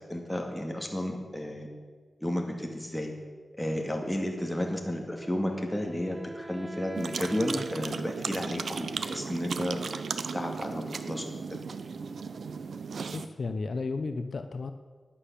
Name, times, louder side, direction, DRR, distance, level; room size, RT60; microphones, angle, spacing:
voice 1, 0.0-1.7 2.2-3.1 3.6-9.8 10.3-11.6, left 1 dB, 5° left, 1 dB, 2.2 m, -32 dB
Wind instrument woodwind instrument, 5.2-8.8, right 1 dB, 15° right, 1.0 m, -46 dB
sound 1, 7.0-13.3, right 5 dB, 80° right, 0.7 m, -36 dB
voice 2, 13.1-14.7, left 3 dB, 60° left, 8 dB, 0.7 m, -33 dB
11.0 x 10.0 x 8.5 m, 1.5 s
wide cardioid pair, 120°, 0 cm